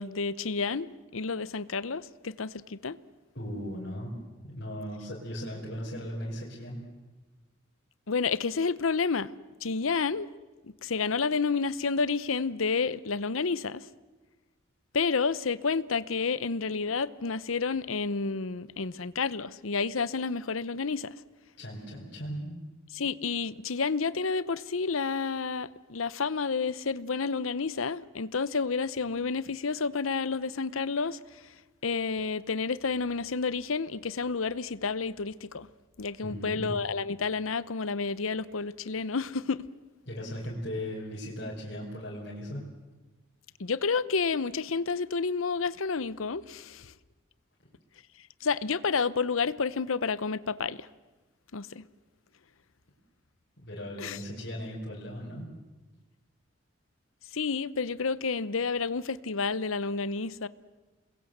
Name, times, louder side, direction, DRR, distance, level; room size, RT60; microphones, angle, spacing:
voice 1, 0.0-3.0 8.1-9.3 9.6-10.3 10.6-13.9 14.9-21.1 22.9-31.5 31.8-35.7 36.0-39.6 43.6-46.9 48.4-50.9 51.5-51.8 54.0-54.2 57.3-60.5, left 4 dB, 90° left, 0.8 m, -30 dB
voice 2, 3.3-4.2 4.4-6.8 21.6-22.6 36.2-36.8 40.0-42.6 53.6-55.5, equal, 55° left, 5.1 m, -37 dB
29.0 x 21.5 x 8.0 m
head